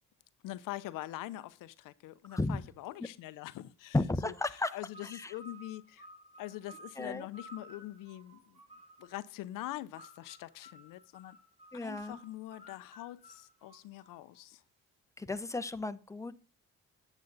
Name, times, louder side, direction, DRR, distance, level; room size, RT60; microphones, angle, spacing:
voice 1, 0.4-4.0 4.2-6.1 6.4-8.6 9.0-11.4 11.8-14.6, left 15 dB, 80° left, 0.7 m, -44 dB
voice 2, 3.9-4.7 5.0-5.3 7.0-7.3 11.7-12.2 15.2-16.4, left 2 dB, 10° left, 0.9 m, -34 dB
sound 1, 4.5-9.3 9.9-14.4, equal, 20° right, 5.8 m, -55 dB
9.7 x 8.4 x 4.0 m
supercardioid pair, 70°, 32 cm